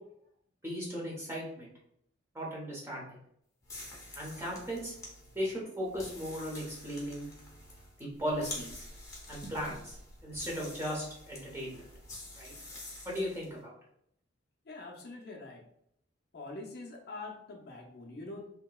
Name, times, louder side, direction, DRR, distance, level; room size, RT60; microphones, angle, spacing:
voice 1, 0.6-1.7 2.3-3.2 4.2-4.9 5.3-7.3 8.0-8.8 9.3-10.0 10.2-11.8 12.4-12.5 13.0-13.7, equal, 15° right, -4 dB, 0.8 m, -37 dB
sound 1, 3.6-13.5, left 2 dB, 15° left, 0.7 m, -48 dB
voice 2, 14.7-15.6 16.3-18.5, left 2 dB, 55° left, 0 dB, 0.5 m, -44 dB
2.9 x 2.8 x 2.3 m, 0.73 s
head